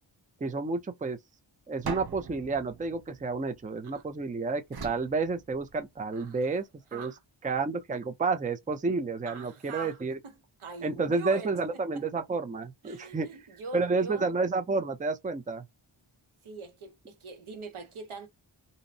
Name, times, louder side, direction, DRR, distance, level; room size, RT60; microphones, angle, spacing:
voice 1, 0.4-1.2 1.7-7.1 7.4-10.2 10.8-13.3 13.7-15.6, right 3 dB, 20° right, 0.4 m, -30 dB
sound 1, 1.8-4.1 4.7-6.1, right 6 dB, 50° right, 0.7 m, -42 dB
voice 2, 6.1-6.6 6.9-7.2 9.3-10.3 10.6-12.0 12.8-14.3 16.4-18.3, right 4 dB, 85° right, 0.8 m, -43 dB
2.7 x 2.0 x 2.6 m
wide cardioid pair, 65°, 48 cm